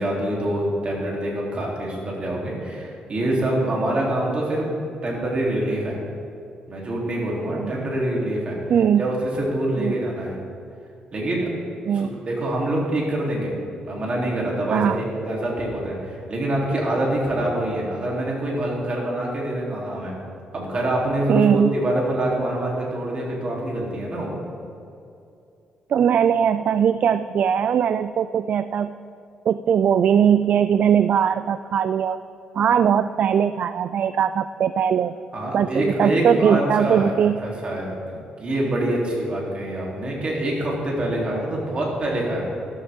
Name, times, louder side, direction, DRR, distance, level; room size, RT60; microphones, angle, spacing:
voice 1, 0.0-4.7 5.0-6.0 6.7-8.6 9.0-10.4 11.1-11.5 11.9-13.5 13.8-20.1 20.5-24.3 35.3-38.0 38.4-42.4, right 1 dB, 40° right, -3 dB, 3.4 m, -25 dB
voice 2, 8.7-9.0 9.8-9.9 11.9-12.1 14.7-15.0 21.3-21.7 25.9-28.9 29.5-32.2 32.5-35.2 35.5-37.4, right 8 dB, 60° right, 13 dB, 0.3 m, -20 dB
13.5 x 12.0 x 3.7 m, 2.6 s
cardioid pair, 110°, 3 cm